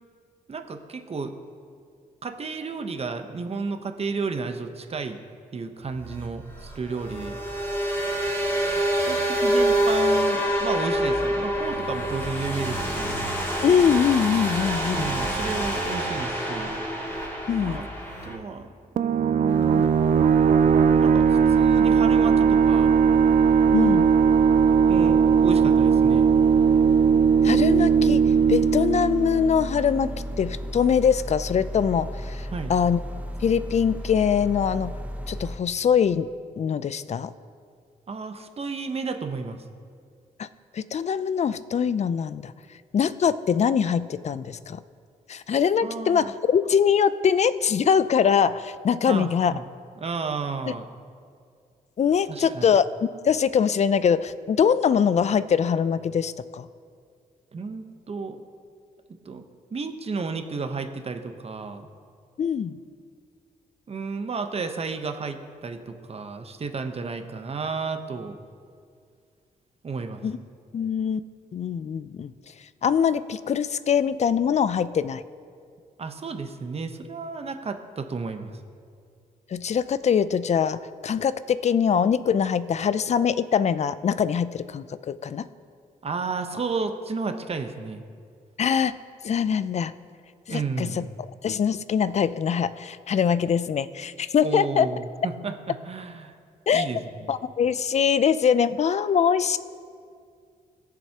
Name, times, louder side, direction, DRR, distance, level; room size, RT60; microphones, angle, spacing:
voice 1, 0.5-1.3 2.2-5.2 5.5-7.4 9.0-13.2 14.9-16.8 17.6-17.9 18.2-18.7 18.9-20.1 21.0-22.9 24.9-26.3 32.5-32.7 38.1-39.6 45.8-46.3 49.1-49.7 50.0-50.9 52.3-52.7 57.5-58.4 59.3-59.5 59.7-61.9 63.9-68.4 69.8-70.3 76.0-78.5 86.0-88.0 90.5-91.1 94.4-96.3 96.7-97.3, right 4 dB, 40° right, 7 dB, 0.9 m, -32 dB
sound 1, 5.9-18.3, right 1 dB, 15° left, 2.5 m, -26 dB
voice 2, 13.6-15.1 17.5-17.9 23.7-24.2 27.4-28.2 28.5-33.0 33.4-35.0 35.3-36.3 36.6-37.3 40.4-40.5 40.7-42.5 42.9-44.8 45.3-49.6 50.7-50.8 52.0-52.8 53.2-56.7 62.4-62.8 70.2-70.4 70.7-71.2 71.5-72.3 72.8-75.2 79.5-85.5 88.6-89.0 89.2-89.9 90.5-91.1 91.4-94.9 96.7-96.9 97.3-99.6, left 7 dB, 50° left, 15 dB, 0.4 m, -23 dB
sound 2, 19.0-30.2, right 6 dB, 60° right, 0.4 m, -19 dB
sound 3, 19.5-35.6, equal, 10° right, 0.8 m, -35 dB
17.5 x 7.4 x 2.9 m, 2.2 s
cardioid pair, 70°, 15 cm